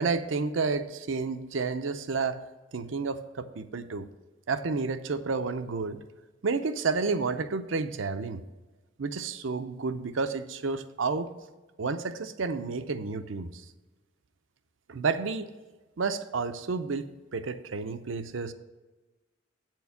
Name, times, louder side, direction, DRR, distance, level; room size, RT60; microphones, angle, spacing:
voice 1, 0.0-2.4 2.7-4.1 4.5-6.0 6.4-8.4 9.0-11.3 11.8-13.6 14.9-15.5 16.0-18.5, right 4 dB, 75° right, 10 dB, 0.6 m, -30 dB
8.4 x 4.5 x 7.0 m, 1.2 s
head